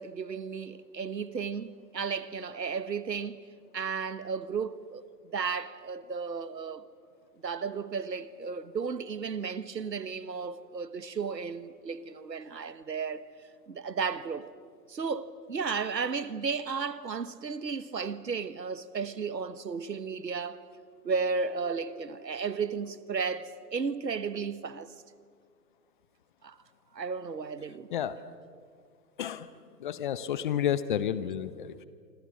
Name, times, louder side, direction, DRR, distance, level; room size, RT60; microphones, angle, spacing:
voice 1, 0.0-3.4 3.7-5.0 5.3-6.8 7.4-13.2 13.7-14.5 14.9-20.6 21.0-24.9 26.4-26.6 26.9-27.9, right 5 dB, 80° right, 1.4 m, -34 dB
sound 1, 19.8-23.7, right 1 dB, 80° left, 7.9 m, -58 dB
voice 2, 29.2-29.5 29.8-31.9, left 10 dB, 30° left, 0.8 m, -31 dB
27.5 x 26.0 x 6.3 m
figure-of-eight pair, 125°, 50 cm